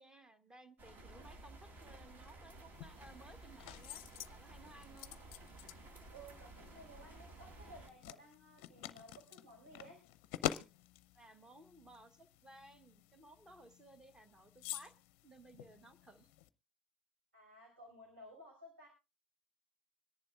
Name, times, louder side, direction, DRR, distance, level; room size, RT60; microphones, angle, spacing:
voice 1, 0.0-4.0 4.3-5.2 11.1-15.0 15.2-16.3, right 1 dB, 10° right, 13 dB, 1.0 m, -59 dB
sound 1, 0.8-7.9, right 2 dB, 30° right, 1.5 m, -55 dB
sound 2, 2.7-16.5, left 13 dB, 45° left, 0.6 m, -48 dB
voice 2, 6.1-10.0 17.3-18.9, right 1 dB, 75° right, -2 dB, 5.3 m, -56 dB
25.0 x 10.5 x 2.4 m, 0.28 s
figure-of-eight pair, 85°, 6 cm